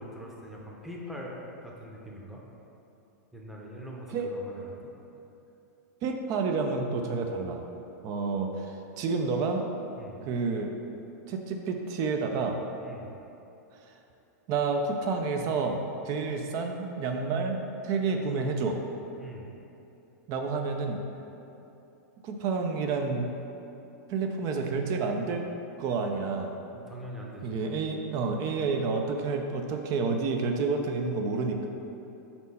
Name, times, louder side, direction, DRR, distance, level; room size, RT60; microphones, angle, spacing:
voice 1, 0.0-2.4 3.3-4.9 10.0-10.2 12.8-13.1 19.2-19.5 26.7-27.6, equal, 5° right, -3 dB, 0.8 m, -42 dB
voice 2, 6.0-7.6 8.0-9.6 10.2-10.7 11.3-12.6 14.5-17.6 17.8-18.8 20.3-21.0 22.2-23.3 24.1-25.4 25.8-26.5 27.4-31.7, right 4 dB, 40° right, 4 dB, 0.5 m, -29 dB
4.4 x 4.2 x 5.5 m, 2.9 s
supercardioid pair, 135°, 9 cm